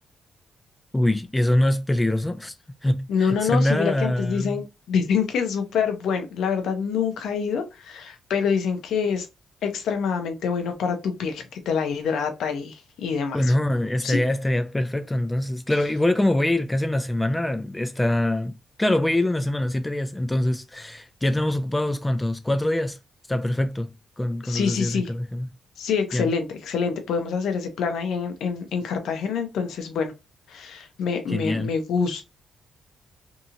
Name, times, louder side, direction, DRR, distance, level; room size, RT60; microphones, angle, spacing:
voice 1, 0.9-2.5 2.8-4.6 13.3-23.0 23.3-25.5 26.1-26.3 31.3-31.7, left 1 dB, 10° left, 0.3 m, -24 dB
voice 2, 3.1-9.3 9.6-13.5 14.0-14.2 24.4-25.1 25.8-30.1 30.5-32.2, left 6 dB, 85° left, 0.6 m, -26 dB
2.8 x 2.7 x 2.4 m
cardioid pair, 120°, 0 cm